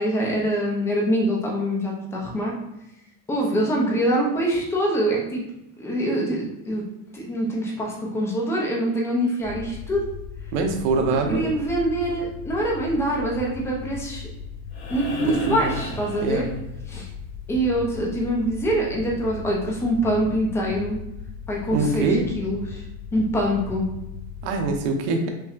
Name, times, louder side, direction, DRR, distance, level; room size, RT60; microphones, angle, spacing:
voice 1, 0.0-2.5 3.3-5.4 5.8-6.8 7.1-10.1 11.1-14.3 14.9-16.5 16.9-17.1 17.5-21.0 21.5-22.8 23.1-23.9, right 1 dB, 5° left, -2 dB, 0.3 m, -24 dB
sound 1, 9.4-24.7, left 6 dB, 25° left, 1.0 m, -37 dB
voice 2, 10.5-11.5 15.2-15.7 16.2-16.5 21.7-22.3 24.4-25.3, right 3 dB, 60° right, 4 dB, 0.8 m, -23 dB
sound 2, 14.7-17.0 18.9-19.0, left 1 dB, 65° left, 1.4 m, -36 dB
5.6 x 2.1 x 2.4 m, 0.90 s
supercardioid pair, 140°, 46 cm